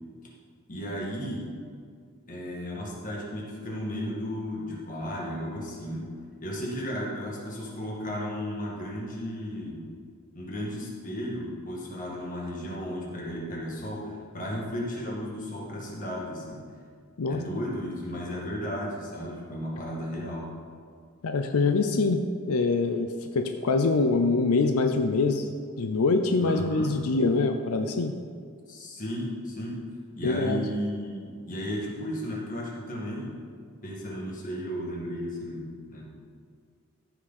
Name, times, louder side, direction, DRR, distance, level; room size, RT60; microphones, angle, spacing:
voice 1, 0.7-1.5 2.3-6.1 6.4-9.9 10.3-16.6 17.3-20.6 26.4-27.0 28.7-29.8 30.2-33.4 33.8-36.2, equal, 35° left, -4 dB, 2.1 m, -34 dB
voice 2, 21.2-25.5 25.8-28.1 30.2-30.7, left 3 dB, 90° left, 6 dB, 0.5 m, -24 dB
14.5 x 6.0 x 4.2 m, 2.1 s
head